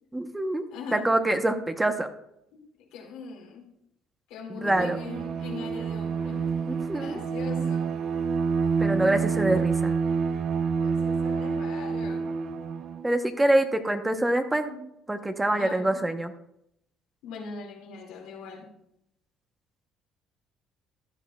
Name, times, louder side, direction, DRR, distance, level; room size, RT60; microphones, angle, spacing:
voice 1, 0.1-0.6 0.9-2.1 4.6-5.0 6.7-7.2 8.8-9.9 13.0-14.7 15.1-16.3, right 1 dB, 10° right, 7 dB, 0.9 m, -25 dB
voice 2, 0.7-1.1 2.5-3.7 4.3-6.5 6.9-8.0 10.8-12.3 14.7-14.8 15.5-16.0 17.2-18.7, left 5 dB, 85° left, 0 dB, 2.3 m, -41 dB
Bowed string instrument, 4.6-13.1, right 5 dB, 55° right, 0.7 m, -28 dB
14.5 x 10.5 x 2.3 m, 0.79 s
cardioid pair, 105°, 0 cm